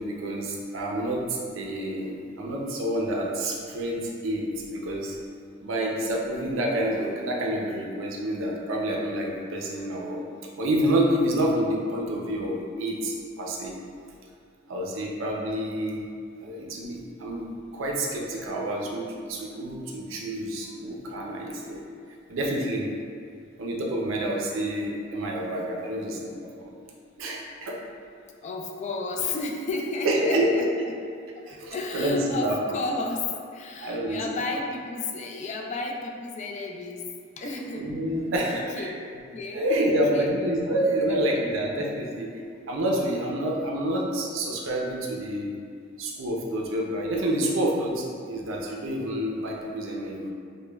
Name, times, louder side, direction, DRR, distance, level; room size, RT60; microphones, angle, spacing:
voice 1, 0.0-4.4 4.7-5.2 5.6-10.2 10.6-13.7 14.7-16.0 16.4-21.9 22.3-22.9 23.6-26.3 26.6-26.7 27.2-27.8 30.0-30.9 31.5-32.6 33.8-34.4 37.8-38.9 39.5-42.3 42.7-45.5 46.0-50.3, right 1 dB, 85° right, -1 dB, 0.5 m, -28 dB
voice 2, 28.4-30.6 31.3-37.9 38.4-38.9 39.3-40.3 41.1-41.2, left 3 dB, 35° left, 1 dB, 0.3 m, -33 dB
5.0 x 2.1 x 2.2 m, 2.3 s
head